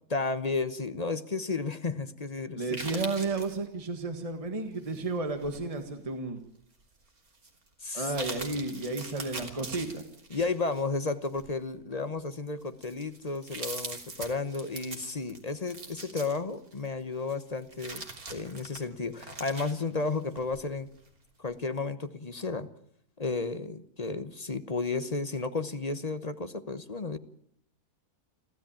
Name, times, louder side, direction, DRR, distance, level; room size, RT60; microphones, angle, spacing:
voice 1, 0.1-3.0 7.8-8.1 10.3-20.9 21.4-22.7 23.2-27.2, left 3 dB, 30° left, 12 dB, 1.0 m, -33 dB
voice 2, 2.5-6.4 7.9-10.0, right 3 dB, 25° right, 6 dB, 1.8 m, -32 dB
sound 1, 2.6-3.6 4.8-5.8 6.3-6.4 7.3-7.5 7.9-10.8 11.2-11.5 12.2-12.3 12.6-16.9 17.3-20.6 21.0-21.1, right 3 dB, 70° right, 3.8 m, -42 dB
30.0 x 13.5 x 8.9 m, 0.69 s
omnidirectional pair, 1.6 m